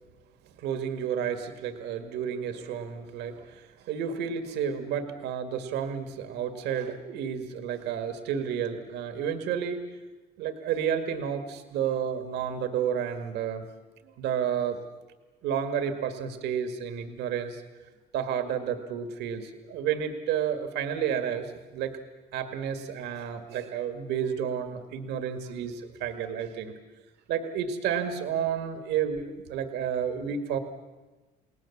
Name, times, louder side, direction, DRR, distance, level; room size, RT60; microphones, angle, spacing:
voice 1, 0.6-9.8 10.4-13.6 14.0-14.8 15.4-17.6 18.1-21.9 22.3-26.7 27.3-30.6, right 8 dB, 85° right, 7 dB, 2.1 m, -31 dB
30.0 x 19.0 x 7.3 m, 1.2 s
cardioid pair, 110°, 17 cm